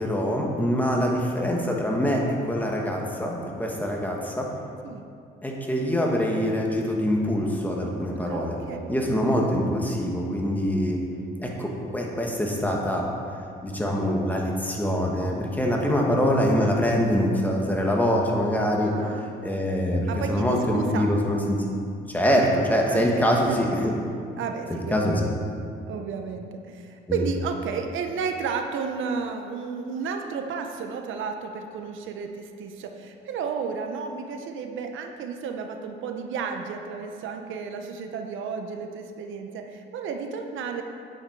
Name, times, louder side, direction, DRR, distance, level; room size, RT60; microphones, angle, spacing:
voice 1, 0.0-4.5 5.4-8.6 8.9-11.0 11.4-13.1 13.6-18.9 19.4-21.6 22.1-23.9 24.7-25.2 27.1-27.2, equal, 10° left, -1 dB, 1.9 m, -24 dB
voice 2, 8.1-8.9 15.8-16.4 18.8-19.3 20.1-21.1 22.9-23.6 24.4-25.3 25.9-40.8, right 5 dB, 80° right, 5 dB, 0.9 m, -33 dB
9.4 x 9.0 x 4.7 m, 2.3 s
cardioid pair, 90°, 20 cm